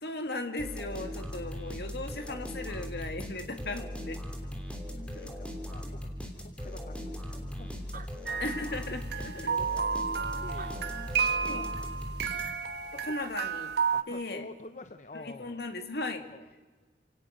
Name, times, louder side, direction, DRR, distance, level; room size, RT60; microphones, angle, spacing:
voice 1, 0.0-4.2 5.1-5.3 8.4-9.5 11.4-11.6 12.9-13.7 14.1-14.5 15.1-16.3, left 2 dB, 60° left, 6 dB, 2.3 m, -37 dB
sound 1, 0.6-12.8, equal, 5° left, 3.1 m, -39 dB
voice 2, 5.0-8.3 9.4-10.0 10.4-11.7 13.9-15.6 16.2-16.5, left 2 dB, 40° left, 9 dB, 0.8 m, -48 dB
Animal, 7.5-7.6 7.8-9.2 9.8-9.9 10.5-11.5 12.9-13.0 13.2-14.1, right 5 dB, 50° right, 1.3 m, -50 dB
sound 2, 8.3-14.0, right 6 dB, 65° right, 1.2 m, -32 dB
29.5 x 18.0 x 6.6 m, 1.3 s
head